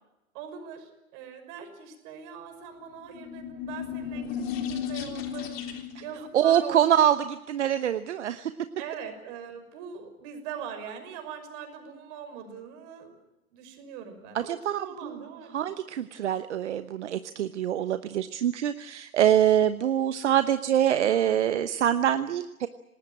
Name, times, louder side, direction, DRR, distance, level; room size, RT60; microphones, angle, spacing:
voice 1, 0.3-7.2 8.8-13.2 13.5-15.7, right 7 dB, 35° right, 7 dB, 6.0 m, -42 dB
sound 1, 3.0-6.1, left 8 dB, 45° left, 3.5 m, -34 dB
voice 2, 6.3-8.5 14.3-15.2 15.5-22.7, right 10 dB, 55° right, 12 dB, 1.1 m, -25 dB
27.5 x 19.5 x 8.9 m, 0.94 s
figure-of-eight pair, 110°, 42 cm